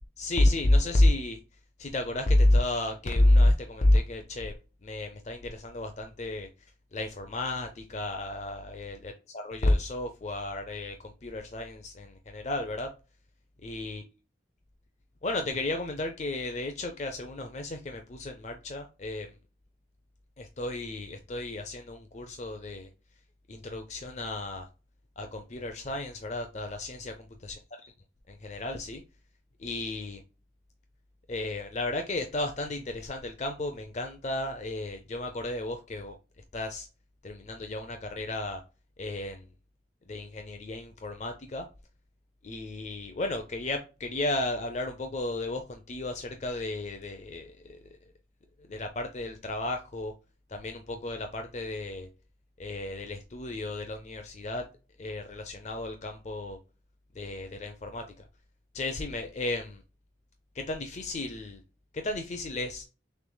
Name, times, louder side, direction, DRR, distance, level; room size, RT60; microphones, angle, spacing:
voice 1, 0.2-1.4 1.8-4.5 4.8-6.5 6.9-12.9 13.6-14.0 15.2-19.3 20.4-22.9 23.5-24.7 25.2-27.6 28.3-29.0 29.6-30.2 31.3-36.2 36.5-36.9 37.2-38.6 39.0-39.4 40.1-41.7 42.4-47.8 48.7-50.1 50.5-52.1 52.6-54.6 55.0-56.6 57.2-58.0 58.7-59.8 60.5-61.6 61.9-62.8, left 1 dB, 35° left, 0.5 m, -31 dB
6.5 x 3.1 x 2.2 m
head